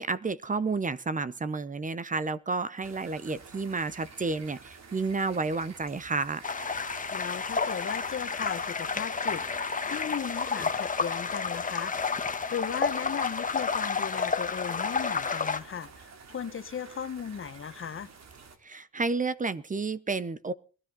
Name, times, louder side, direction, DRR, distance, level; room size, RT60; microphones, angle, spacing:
voice 1, 0.0-6.4 18.6-20.5, right 4 dB, 25° right, 0.8 m, -31 dB
sound 1, 2.8-18.6, right 5 dB, 60° right, 3.2 m, -50 dB
sound 2, 6.4-15.6, left 5 dB, 25° left, 1.5 m, -30 dB
voice 2, 7.1-9.4 9.8-11.9 12.5-18.1, left 7 dB, 45° left, 1.4 m, -36 dB
22.0 x 13.0 x 4.1 m
cardioid pair, 90°, 30 cm